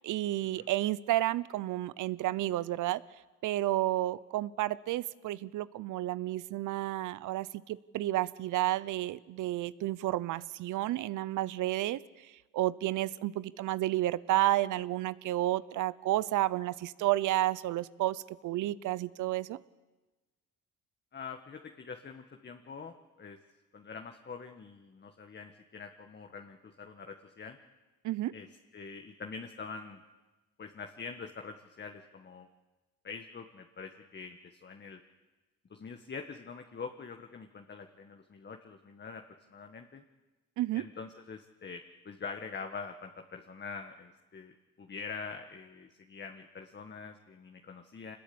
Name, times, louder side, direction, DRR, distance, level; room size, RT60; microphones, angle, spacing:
voice 1, 0.0-3.0 3.4-12.0 12.5-19.6 28.0-28.3 40.6-40.8, right 15 dB, 85° right, 19 dB, 0.8 m, -31 dB
voice 2, 21.1-23.4 23.7-27.6 28.3-28.5 28.7-30.0 30.6-32.5 33.0-35.0 35.7-39.2 39.5-40.0 40.7-48.2, left 5 dB, 35° left, 5 dB, 1.6 m, -45 dB
25.5 x 20.5 x 8.6 m, 1.2 s
cardioid pair, 90°, 30 cm